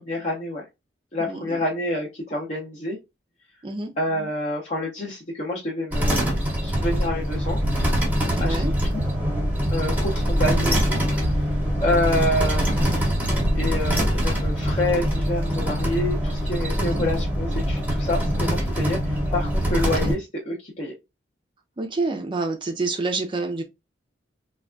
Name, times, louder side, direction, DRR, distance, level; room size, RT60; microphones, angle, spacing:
voice 1, 0.1-0.6 1.1-3.0 4.0-6.4 6.6-7.6 8.4-9.0 9.7-11.5 11.8-13.0 13.5-20.9, left 1 dB, 40° left, 0.6 m, -28 dB
voice 2, 1.3-1.6 3.6-3.9 8.3-8.7 16.7-17.1 19.8-20.1 21.8-23.6, right 3 dB, 25° right, 0.4 m, -28 dB
sound 1, 5.9-20.1, equal, 10° right, 0.8 m, -23 dB
3.4 x 2.2 x 2.4 m
head